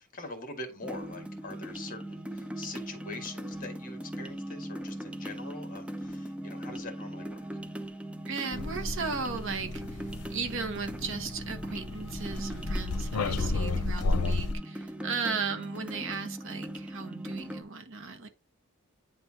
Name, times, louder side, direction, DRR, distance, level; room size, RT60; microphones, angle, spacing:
voice 1, 0.0-7.4, left 2 dB, 40° left, 1.7 m, -43 dB
sound 1, 0.8-17.6, right 1 dB, 5° right, 0.5 m, -40 dB
voice 2, 8.3-18.3, right 5 dB, 60° right, 1.2 m, -36 dB
sound 2, 8.5-14.5, left 3 dB, 90° left, 0.6 m, -33 dB
9.5 x 3.6 x 2.8 m
head